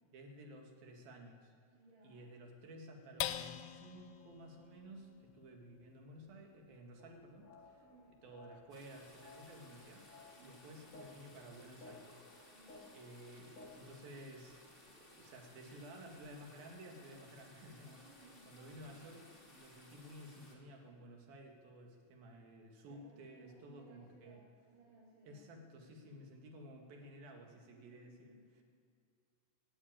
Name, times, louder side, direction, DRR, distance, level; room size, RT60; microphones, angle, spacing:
voice 1, 0.1-1.5 2.0-12.6 12.9-24.4 25.3-28.6, right 1 dB, 90° right, 2 dB, 3.8 m, -54 dB
voice 2, 1.7-2.3 7.8-8.2 10.3-10.7 12.5-13.0 17.8-19.0 22.8-25.5 25.9-26.1 27.6-28.6, right 2 dB, 55° right, -9 dB, 4.6 m, -63 dB
sound 1, 3.2-9.9 10.4-10.5 10.9-11.4, left 12 dB, 80° left, 2.0 m, -48 dB
sound 2, 7.0-14.0, left 3 dB, 50° left, 0.9 m, -59 dB
sound 3, 8.7-20.5, left 1 dB, 20° left, 2.6 m, -61 dB
17.5 x 8.7 x 9.0 m, 2.3 s
omnidirectional pair, 4.0 m